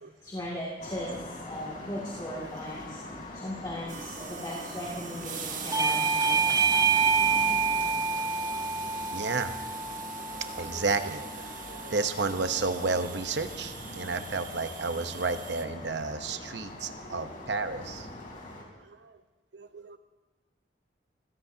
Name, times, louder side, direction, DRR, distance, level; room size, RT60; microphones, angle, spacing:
voice 1, 0.2-1.2 1.4-3.0 3.3-6.6, left 1 dB, 25° left, -5 dB, 2.5 m, -37 dB
sound 1, 0.8-18.6, left 1 dB, 50° left, 3.3 m, -43 dB
sound 2, 3.9-15.6, right 7 dB, 50° right, 1.3 m, -42 dB
Bell / Doorbell, 5.7-10.9, right 5 dB, 20° right, 0.8 m, -27 dB
voice 2, 9.1-9.6 10.3-18.1 18.8-19.2 19.5-20.0, right 3 dB, 70° right, 9 dB, 0.9 m, -32 dB
25.0 x 16.5 x 2.8 m, 1.1 s
head